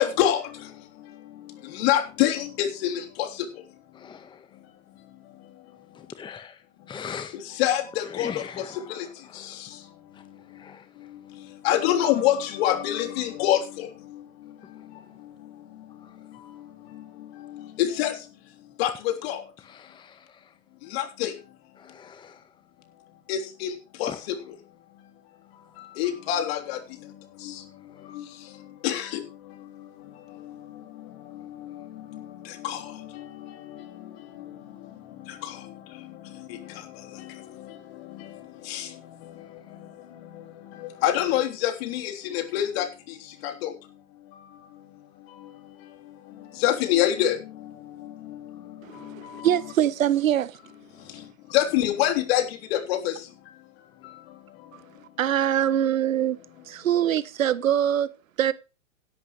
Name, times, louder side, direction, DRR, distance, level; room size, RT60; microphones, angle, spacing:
voice 1, 0.0-4.1 4.5-6.1 7.3-19.5 20.8-21.6 21.8-22.0 23.3-24.5 24.9-25.1 25.4-49.7 50.9-55.2, left 12 dB, 50° left, 3.5 m, -30 dB
voice 2, 3.9-4.6 5.9-7.4 8.0-9.8 10.1-11.5 14.6-15.2 16.0-16.3 19.6-20.6 21.8-22.6 24.0-24.2 25.6-26.0 27.6-28.2 39.4-39.8 48.5-49.1 54.0-54.2, left 7 dB, 10° left, 1.2 m, -44 dB
voice 3, 49.0-50.5 55.2-56.4 56.7-58.1 58.4-58.5, right 10 dB, 80° right, 1.2 m, -23 dB
16.5 x 11.5 x 3.2 m
hypercardioid pair, 125°, 40 cm